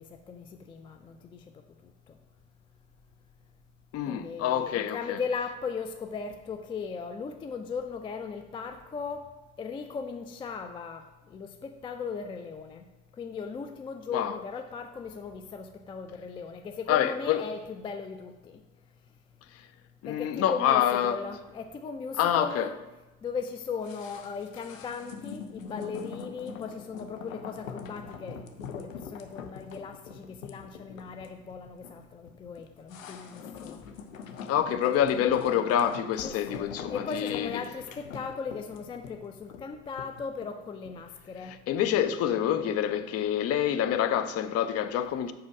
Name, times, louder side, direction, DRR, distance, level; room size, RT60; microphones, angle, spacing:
voice 1, 0.0-1.4 4.1-9.3 9.6-12.9 13.2-18.6 20.1-22.8 23.2-33.8 36.2-41.6, left 5 dB, 15° left, 0.3 m, -37 dB
voice 2, 3.9-5.2 14.1-14.3 16.9-17.4 20.0-21.2 22.2-22.7 34.5-37.5 41.4-45.3, left 10 dB, 35° left, 0.7 m, -27 dB
sound 1, 23.8-41.1 41.4-41.5, left 6 dB, 75° left, 0.8 m, -43 dB
7.4 x 5.9 x 4.6 m
figure-of-eight pair, 70°, 40 cm